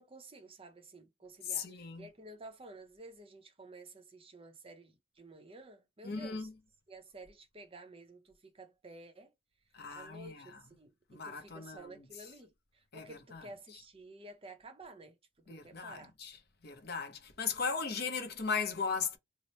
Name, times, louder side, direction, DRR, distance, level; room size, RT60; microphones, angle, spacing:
voice 1, 0.0-6.5 6.9-9.3 9.9-15.2 15.4-16.1, right 2 dB, 25° right, 0.6 m, -52 dB
voice 2, 1.5-2.1 6.0-6.5 9.7-10.4 11.1-11.9 12.9-13.1 13.3-13.4 15.5-16.4 16.6-19.2, left 5 dB, 50° left, 0.7 m, -37 dB
3.0 x 2.0 x 4.0 m
head